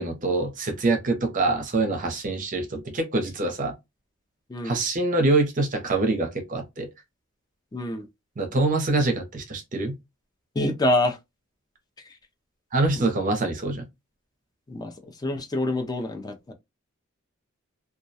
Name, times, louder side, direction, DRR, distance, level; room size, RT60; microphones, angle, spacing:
voice 1, 0.0-3.7 4.6-6.9 8.4-9.9 12.7-13.9, right 2 dB, 40° right, 0.6 m, -25 dB
voice 2, 7.7-8.1 10.6-11.2 13.0-13.1 14.7-14.9 15.2-16.5, left 1 dB, 20° left, 0.4 m, -26 dB
2.2 x 2.1 x 2.6 m
head